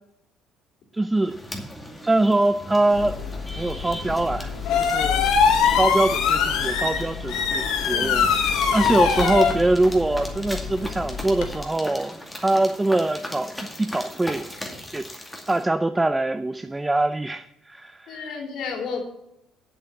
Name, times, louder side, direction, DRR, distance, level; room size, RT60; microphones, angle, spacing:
voice 1, 0.9-1.4 2.0-3.2 3.6-4.5 4.8-5.3 5.8-13.5 13.8-14.5 14.9-15.1 15.5-18.3, right 2 dB, 10° right, 10 dB, 0.5 m, -23 dB
sound 1, 1.2-15.6, left 1 dB, 5° left, 2.3 m, -38 dB
sound 2, 2.9-11.5, left 6 dB, 85° left, 2.1 m, -23 dB
voice 2, 7.9-8.8 18.1-19.0, left 5 dB, 70° left, 1 dB, 3.5 m, -33 dB
7.9 x 7.7 x 8.6 m, 0.86 s
cardioid pair, 115°, 0 cm